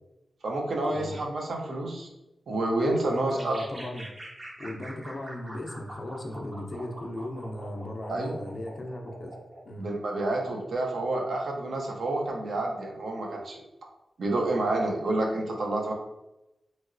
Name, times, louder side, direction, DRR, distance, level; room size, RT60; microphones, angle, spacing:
voice 1, 0.4-2.1 2.5-3.5 8.1-8.4 9.8-13.6 14.2-15.9, right 2 dB, 70° right, 0 dB, 0.6 m, -29 dB
voice 2, 3.1-4.1 4.6-9.4 9.6-9.9, left 1 dB, 40° left, 1 dB, 0.5 m, -37 dB
sound 1, 3.4-9.6, right 1 dB, 30° right, 0.6 m, -44 dB
2.9 x 2.8 x 2.5 m, 0.92 s
wide cardioid pair, 115°, 0 cm